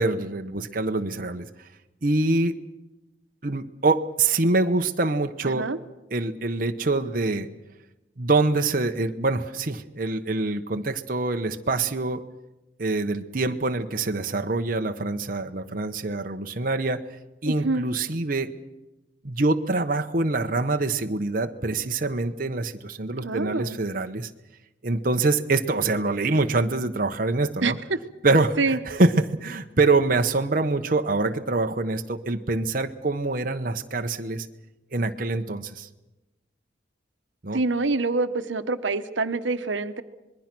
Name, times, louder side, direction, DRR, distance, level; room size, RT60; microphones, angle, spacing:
voice 1, 0.0-1.5 2.0-2.6 3.4-5.7 6.1-7.5 8.2-12.2 12.8-17.0 17.4-18.5 19.2-24.3 24.8-27.8 28.2-34.5 34.9-35.9 37.4-37.6, right 3 dB, 50° right, 5 dB, 1.0 m, -25 dB
voice 2, 17.5-17.8 23.2-23.8 27.6-27.7 28.6-28.8 37.5-40.0, right 3 dB, 85° right, 11 dB, 1.1 m, -26 dB
26.0 x 21.0 x 6.1 m, 1.0 s
head